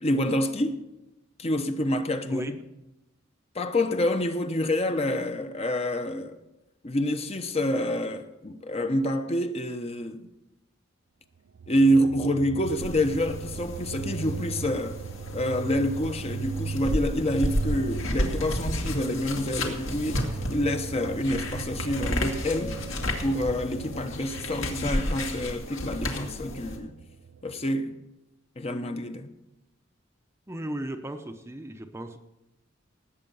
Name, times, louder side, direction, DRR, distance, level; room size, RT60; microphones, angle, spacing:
voice 1, 0.0-0.8 1.4-2.6 3.5-6.4 6.8-10.3 11.7-15.0 15.3-22.8 23.2-27.0 27.4-28.0 28.6-29.3, left 1 dB, 30° left, 0.9 m, -27 dB
sound 1, 11.5-27.7, right 5 dB, 65° right, 0.4 m, -38 dB
sound 2, 12.6-26.8, left 1 dB, 70° left, 2.1 m, -32 dB
voice 2, 30.5-32.2, right 1 dB, 15° right, 0.7 m, -35 dB
18.5 x 8.1 x 5.5 m
head